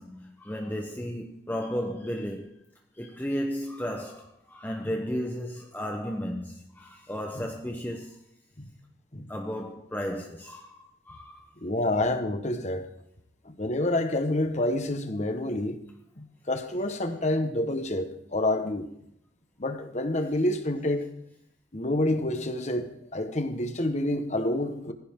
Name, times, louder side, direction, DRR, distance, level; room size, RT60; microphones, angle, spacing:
voice 1, 0.0-2.6 2.9-8.2 9.3-11.5, equal, 10° left, 1.0 m, -34 dB
voice 2, 11.6-12.9 13.4-15.8 16.2-18.9 19.6-21.1 21.7-24.9, left 1 dB, 40° left, 1.4 m, -28 dB
20.0 x 15.5 x 3.8 m
head